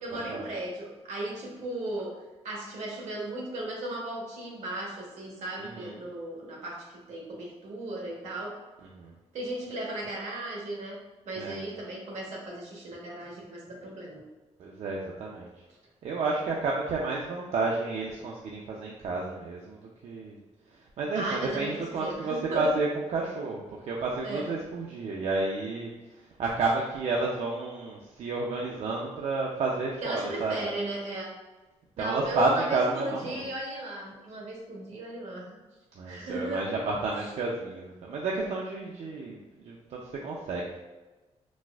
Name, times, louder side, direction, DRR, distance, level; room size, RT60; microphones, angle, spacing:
voice 1, 0.0-2.1 2.4-8.6 9.3-11.0 11.3-14.2 21.1-21.7 22.0-22.7 24.2-24.5 30.0-31.3 32.0-35.6 36.1-36.7, right 1 dB, 80° right, -2 dB, 1.0 m, -36 dB
voice 2, 5.6-5.9 9.0-9.1 11.4-11.6 14.6-15.5 16.0-20.4 21.0-25.9 26.4-30.7 32.0-33.4 36.0-39.4 39.6-40.8, right 3 dB, 65° right, -3 dB, 0.4 m, -31 dB
4.0 x 2.4 x 2.3 m, 1.1 s
wide cardioid pair, 155°, 12 cm